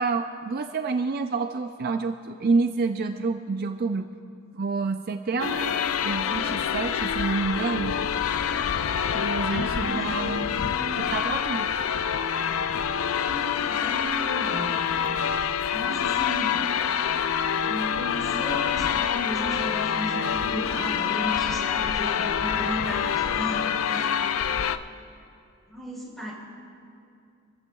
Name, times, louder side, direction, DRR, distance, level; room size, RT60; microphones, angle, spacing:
voice 1, 0.0-4.1 4.5-8.0 9.1-10.7 11.1-11.7, right 4 dB, 45° right, 7 dB, 0.4 m, -28 dB
sound 1, 5.4-24.8, left 8 dB, 75° left, 0.4 m, -26 dB
voice 2, 9.3-10.2 10.7-11.1 13.2-14.8 15.7-16.7 17.6-24.2 25.7-26.3, equal, ahead, -4 dB, 3.9 m, -35 dB
25.5 x 14.5 x 2.3 m, 2.4 s
head